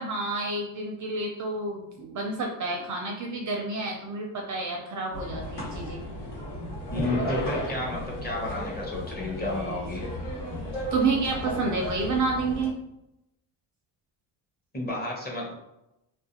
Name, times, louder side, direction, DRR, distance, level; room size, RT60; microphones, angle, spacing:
voice 1, 0.0-6.0 10.9-12.8, right 3 dB, 40° right, 1 dB, 0.4 m, -29 dB
sound 1, 5.1-12.7, equal, 70° left, 1.2 m, -34 dB
voice 2, 6.9-10.0 14.7-15.5, left 2 dB, 20° left, -3 dB, 0.7 m, -31 dB
2.4 x 2.1 x 2.8 m, 0.87 s
cardioid pair, 100°, 48 cm